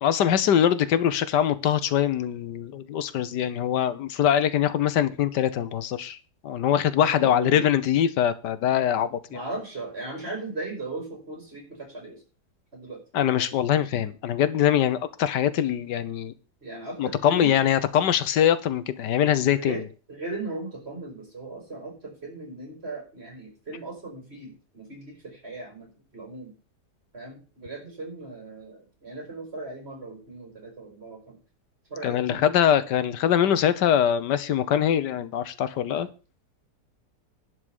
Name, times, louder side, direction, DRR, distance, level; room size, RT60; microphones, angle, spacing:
voice 1, 0.0-6.2 6.4-9.4 13.1-16.3 17.0-19.8 32.0-36.1, left 10 dB, 90° left, 1.5 m, -23 dB
voice 2, 7.0-7.8 9.3-12.2 12.7-13.0 13.3-13.8 16.6-17.6 19.6-19.8 20.1-26.5 27.1-31.3 31.9-32.5 35.8-36.0, right 2 dB, 35° right, 4.8 m, -38 dB
11.0 x 4.9 x 8.0 m
omnidirectional pair, 1.8 m